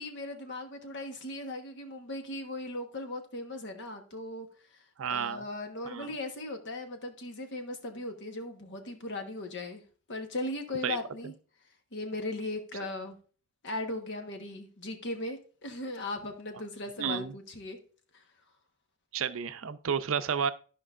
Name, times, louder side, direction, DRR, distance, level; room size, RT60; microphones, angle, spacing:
voice 1, 0.0-4.5 4.7-4.8 5.1-9.8 10.1-11.3 11.9-13.2 13.6-17.8 18.1-18.2, left 2 dB, 55° left, 1.2 m, -38 dB
voice 2, 5.0-5.4 5.9-6.1 10.8-11.0 17.0-17.3 19.1-20.5, right 7 dB, 60° right, 0.5 m, -31 dB
13.5 x 5.2 x 2.5 m
head